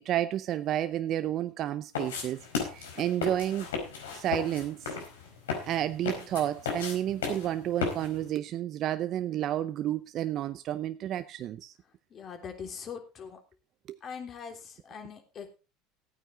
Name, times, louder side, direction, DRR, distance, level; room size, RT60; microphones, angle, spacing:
voice 1, 0.0-2.4 2.7-3.7 4.1-4.9 5.6-11.7 13.9-14.0, right 12 dB, 50° right, 0.6 m, -31 dB
sound 1, 1.9-8.3, left 5 dB, 90° left, 4.4 m, -35 dB
voice 2, 12.1-13.4 14.0-15.5, left 6 dB, 40° left, 3.3 m, -42 dB
15.5 x 9.2 x 3.8 m
hypercardioid pair, 90°, 0 cm